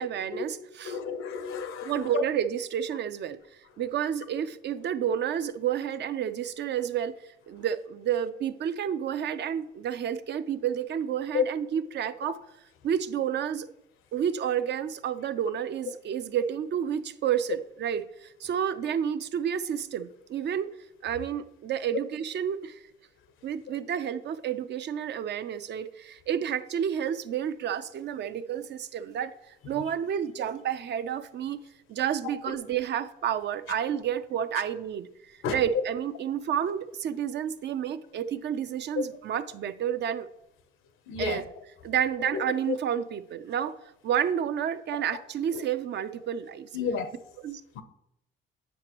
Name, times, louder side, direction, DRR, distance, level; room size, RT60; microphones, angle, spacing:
voice 1, 0.0-1.0 1.8-3.4 3.8-7.1 7.5-12.4 12.8-13.7 14.1-20.7 21.0-22.8 23.4-31.6 31.9-40.3 41.2-41.4 41.8-43.8 44.0-46.7 47.4-47.6, right 9 dB, 60° right, 0.5 m, -30 dB
voice 2, 0.8-2.2 11.3-11.4 32.5-32.6 35.4-35.6 41.1-41.4 46.7-47.1 47.8-47.9, left 6 dB, 85° left, 0.8 m, -30 dB
9.2 x 5.9 x 3.0 m
cardioid pair, 90°, 20 cm